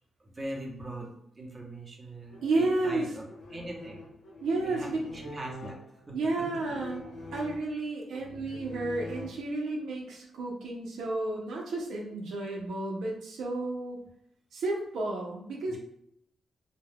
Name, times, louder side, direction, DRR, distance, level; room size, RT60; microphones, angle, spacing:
voice 1, 0.2-3.2 3.5-4.0 4.7-4.9 5.1-5.8 6.1-6.2 15.7-15.8, right 1 dB, 30° right, -1 dB, 0.8 m, -41 dB
sound 1, 2.3-9.8, left 2 dB, 85° left, 0.7 m, -45 dB
voice 2, 2.4-3.1 4.4-5.0 6.1-14.0 14.5-15.8, right 2 dB, 85° right, -1 dB, 0.5 m, -32 dB
2.2 x 2.1 x 3.3 m, 0.72 s
cardioid pair, 75°, 0 cm